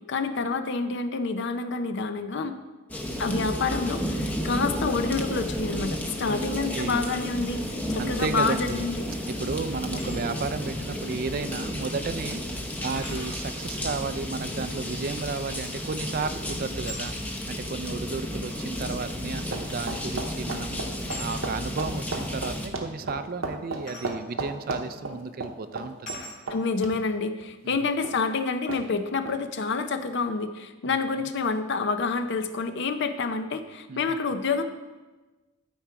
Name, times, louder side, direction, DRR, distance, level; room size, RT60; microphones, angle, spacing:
voice 1, 0.1-2.6 3.2-7.6 7.9-9.0 26.5-34.6, left 4 dB, 55° left, 9 dB, 0.6 m, -28 dB
sound 1, 2.9-22.7, equal, 5° left, 0.7 m, -32 dB
voice 2, 8.0-8.9 9.3-17.1 17.5-26.2 27.6-27.8 30.8-31.3 33.9-34.2, right 4 dB, 45° right, 11 dB, 0.4 m, -33 dB
sound 2, 9.7-10.2 11.7-11.8 13.0-13.4 15.6-15.9 16.8-17.1 18.3-18.4 19.7-19.9 20.2-20.4 21.1-21.4 23.9-24.1 24.9-25.1 26.1-26.4, left 1 dB, 35° left, 2.9 m, -41 dB
sound 3, 19.3-27.0 27.3-27.4 28.0-28.2 28.7-28.8 29.3-29.4, right 3 dB, 70° right, 0.9 m, -33 dB
12.5 x 4.5 x 4.7 m, 1.2 s
head